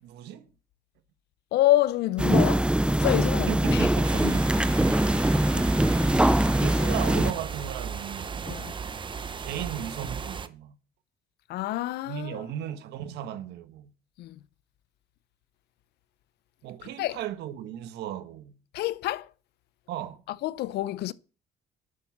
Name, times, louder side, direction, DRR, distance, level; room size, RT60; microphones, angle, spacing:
voice 1, 0.0-0.5 3.2-5.2 6.6-8.4 9.4-10.8 12.0-13.9 16.6-18.6 19.9-20.2, right 11 dB, 80° right, 1.4 m, -36 dB
voice 2, 1.5-3.9 4.2-4.3 8.5-8.7 11.5-12.4 14.2-14.4 16.8-17.2 18.7-19.3 20.3-21.1, left 15 dB, 75° left, 0.7 m, -27 dB
sound 1, 2.2-7.3, right 1 dB, 5° right, 0.6 m, -22 dB
sound 2, 4.0-10.5, right 6 dB, 30° right, 0.9 m, -36 dB
11.0 x 7.9 x 7.3 m
cardioid pair, 110°, 17 cm